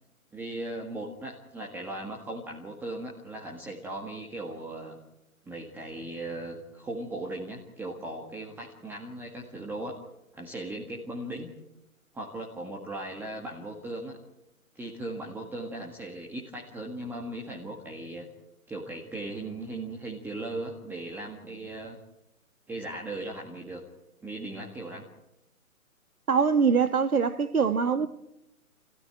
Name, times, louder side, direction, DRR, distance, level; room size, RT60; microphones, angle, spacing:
voice 1, 0.3-5.0 5.5-10.0 10.3-11.5 12.1-14.2 14.8-18.3 18.7-22.0 22.7-23.8 24.2-25.0, right 1 dB, 5° right, 1.7 m, -38 dB
voice 2, 26.3-28.1, right 6 dB, 75° right, 1.9 m, -23 dB
29.0 x 16.0 x 8.9 m
figure-of-eight pair, 145°, 44 cm